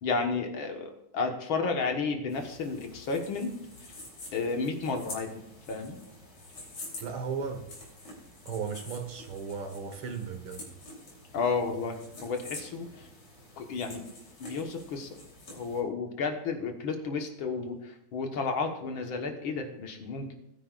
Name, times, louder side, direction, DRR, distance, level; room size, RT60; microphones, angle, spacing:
voice 1, 0.0-3.5 4.3-5.4 5.7-6.0 11.3-13.1 13.6-14.0 14.4-15.1 15.5-20.4, left 4 dB, 70° left, 4 dB, 2.0 m, -32 dB
sound 1, 2.3-15.8, left 2 dB, 90° left, 4.2 m, -47 dB
voice 2, 7.0-7.6 8.5-10.7, right 6 dB, 75° right, 4 dB, 2.2 m, -35 dB
20.5 x 9.5 x 2.4 m, 0.78 s
omnidirectional pair, 2.4 m